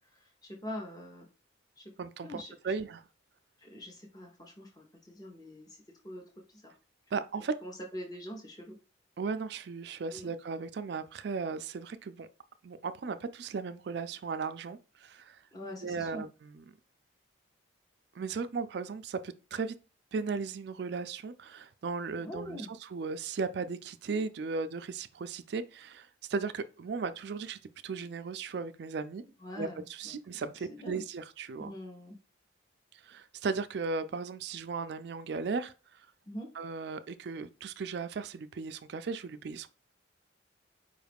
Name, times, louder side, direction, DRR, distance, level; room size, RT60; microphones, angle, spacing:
voice 1, 0.1-1.3 1.8-1.9 2.2-2.8 3.6-6.7 7.1-7.2 7.6-8.8 10.1-10.3 15.5-16.2 22.2-22.7 29.4-30.2 30.7-31.0 31.6-32.2 36.3-36.5, left 1 dB, 20° left, 0.7 m, -44 dB
voice 2, 2.0-3.0 7.1-7.5 9.2-12.3 12.6-15.4 15.8-16.6 18.2-19.7 20.1-29.2 29.6-31.7 32.9-36.1 36.5-39.7, right 4 dB, 60° right, 0.3 m, -36 dB
4.8 x 2.4 x 3.4 m
head